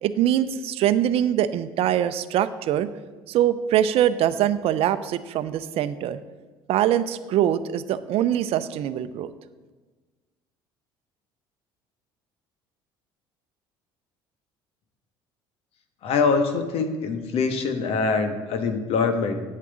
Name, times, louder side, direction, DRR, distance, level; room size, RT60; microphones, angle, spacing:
voice 1, 0.0-2.9 3.3-6.2 6.7-9.3, right 11 dB, 60° right, 12 dB, 0.6 m, -23 dB
voice 2, 16.0-19.4, left 4 dB, 65° left, 7 dB, 1.3 m, -24 dB
8.4 x 7.5 x 8.2 m, 1.3 s
supercardioid pair, 75°, 11 cm